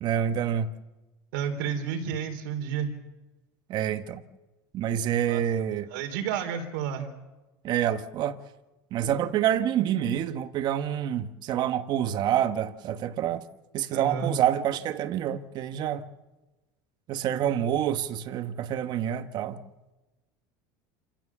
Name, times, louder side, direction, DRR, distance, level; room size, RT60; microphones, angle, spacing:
voice 1, 0.0-0.7 3.7-4.2 4.7-5.9 7.6-8.4 8.9-13.4 13.7-16.0 17.1-19.6, right 10 dB, 45° right, 1.2 m, -27 dB
voice 2, 1.3-2.9 5.3-5.4 5.9-7.1 13.9-14.3, right 8 dB, 85° right, 3.8 m, -31 dB
27.5 x 16.5 x 7.3 m
cardioid pair, 145°, 10 cm